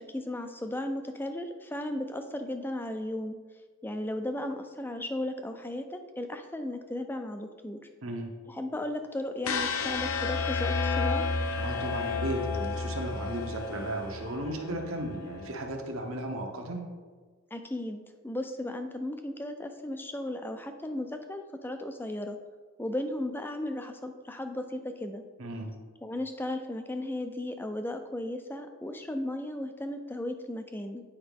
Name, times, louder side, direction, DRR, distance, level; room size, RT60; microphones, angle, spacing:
voice 1, 0.0-3.4 3.8-7.8 8.5-11.3 17.5-22.4 22.8-25.2 26.0-31.0, left 1 dB, 10° left, 7 dB, 0.4 m, -35 dB
voice 2, 8.0-8.3 11.6-16.8 25.4-25.7, right 1 dB, 70° right, 2 dB, 1.1 m, -35 dB
sound 1, 9.4-15.5, left 4 dB, 70° left, 0.6 m, -31 dB
8.6 x 5.1 x 3.5 m, 1.5 s
head